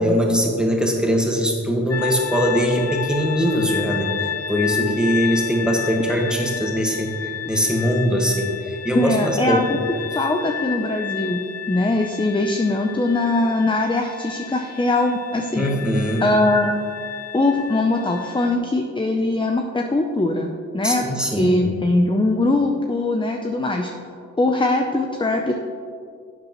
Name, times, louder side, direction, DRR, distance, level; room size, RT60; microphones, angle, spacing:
voice 1, 0.0-4.1 4.5-9.9 15.6-16.3 20.8-21.6, equal, 5° right, 0 dB, 1.6 m, -21 dB
sound 1, 1.9-18.5, left 9 dB, 50° left, 0.7 m, -32 dB
voice 2, 8.9-15.7 16.2-16.7 17.3-23.9 24.4-25.6, left 2 dB, 15° left, 3 dB, 0.6 m, -21 dB
11.5 x 8.0 x 3.1 m, 2.3 s
cardioid pair, 65°, 31 cm